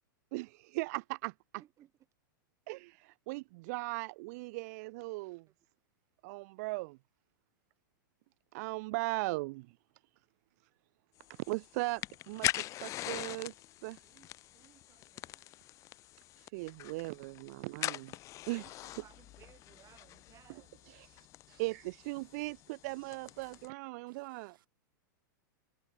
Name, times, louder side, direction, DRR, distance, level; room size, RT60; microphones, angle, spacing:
voice 1, 0.3-1.3 2.7-5.5 6.2-7.0 8.5-9.7 11.3-13.5 13.8-14.0 16.4-18.2 18.5-18.6 20.9-21.1 21.6-24.6, right 24 dB, 50° right, 0.4 m, -38 dB
voice 2, 1.6-1.9 14.0-15.6 18.6-20.8, right 12 dB, 30° right, 6.7 m, -62 dB
sound 1, 11.2-23.7, left 15 dB, 30° left, 0.4 m, -43 dB
voice 3, 21.0-21.7 22.2-22.4 22.9-23.6 24.1-24.7, right 11 dB, 75° right, 4.6 m, -68 dB
hypercardioid pair, 135°, 11 cm